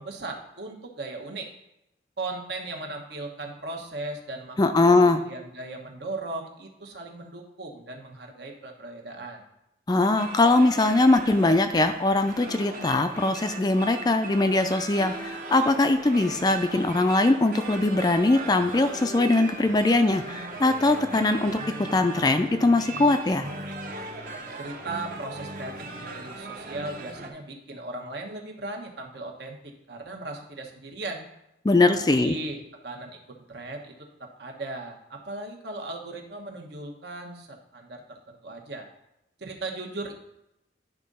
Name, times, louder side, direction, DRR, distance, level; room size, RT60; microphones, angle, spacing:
voice 1, 0.0-1.5 2.2-9.5 24.6-31.3 31.9-33.9 34.2-38.9 39.4-40.1, right 2 dB, 65° right, 2 dB, 1.2 m, -37 dB
voice 2, 4.6-5.2 9.9-23.5 31.6-32.3, left 2 dB, 20° left, 9 dB, 0.3 m, -21 dB
sound 1, 10.2-27.3, right 2 dB, 45° right, 1.0 m, -38 dB
10.5 x 3.7 x 5.4 m, 0.85 s
head